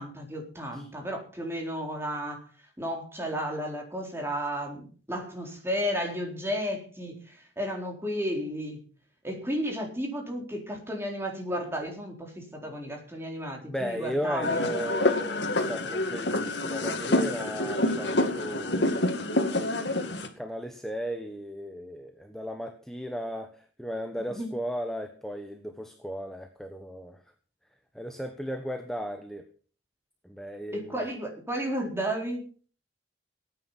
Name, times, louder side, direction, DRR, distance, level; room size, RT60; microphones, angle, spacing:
voice 1, 0.0-2.5 2.8-8.8 9.2-14.7 24.3-24.5 30.7-32.5, equal, 15° right, 1 dB, 4.1 m, -33 dB
voice 2, 13.6-19.2 20.4-27.2 27.9-29.5 30.2-31.1, equal, ahead, 5 dB, 1.2 m, -35 dB
sound 1, 14.4-20.3, left 2 dB, 70° left, 2.3 m, -27 dB
18.0 x 9.5 x 5.8 m, 0.41 s
head